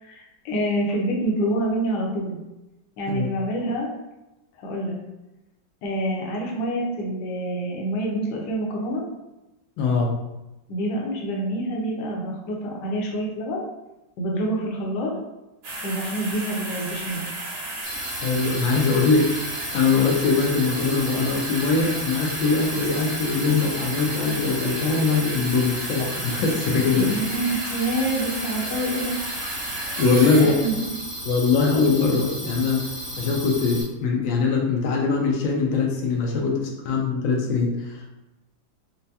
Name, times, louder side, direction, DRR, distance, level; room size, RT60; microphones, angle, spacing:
voice 1, 0.0-2.4 3.0-3.9 4.6-5.0 5.8-9.0 10.7-13.6 14.2-15.1 15.8-17.3 26.9-29.2 30.4-31.1, right 1 dB, 70° left, -2 dB, 1.3 m, -27 dB
voice 2, 9.8-10.1 18.2-27.1 30.0-30.5 31.3-32.8 33.2-38.1, left 4 dB, 90° left, 0 dB, 1.4 m, -22 dB
sound 1, 15.6-30.9 31.5-31.6, right 1 dB, 75° right, 1.7 m, -33 dB
sound 2, 17.8-33.8, equal, 40° right, 0.9 m, -35 dB
4.4 x 2.2 x 2.7 m, 0.98 s
omnidirectional pair, 2.0 m